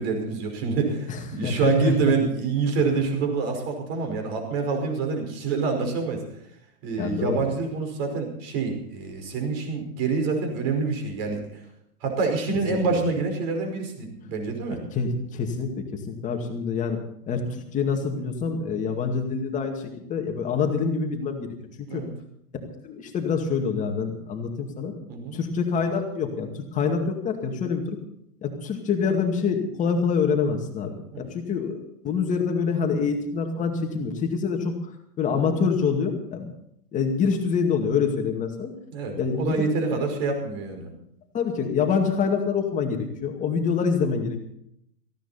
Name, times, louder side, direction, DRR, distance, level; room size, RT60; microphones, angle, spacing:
voice 1, 0.0-6.2 6.8-11.6 12.0-14.8 21.9-22.1 25.1-25.4 31.1-31.2 38.9-40.9, right 4 dB, 40° right, 4 dB, 5.3 m, -26 dB
voice 2, 1.1-2.1 2.8-3.0 7.0-7.4 12.7-13.0 14.7-17.0 17.3-22.0 22.8-24.9 25.3-28.0 28.4-34.7 35.2-36.5 36.9-38.7 39.2-40.0 41.3-44.4, left 5 dB, 15° left, 4 dB, 2.2 m, -26 dB
18.0 x 15.5 x 4.3 m, 0.75 s
hypercardioid pair, 155°, 47 cm